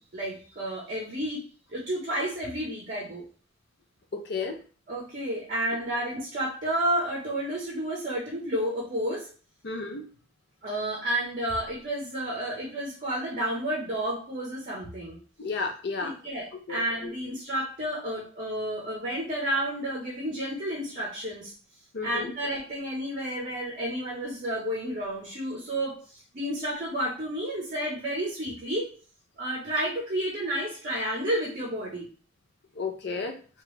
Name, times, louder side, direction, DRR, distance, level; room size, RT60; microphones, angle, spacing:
voice 1, 0.0-1.4 1.7-3.2 4.9-9.3 10.6-15.2 16.0-21.5 22.0-28.9 29.4-32.1, right 1 dB, 40° right, -2 dB, 0.7 m, -31 dB
voice 2, 4.1-4.6 9.6-10.1 15.4-16.1 16.7-17.1 21.9-22.3 32.8-33.3, left 4 dB, 55° left, 5 dB, 0.5 m, -32 dB
2.9 x 2.3 x 3.1 m, 0.40 s
head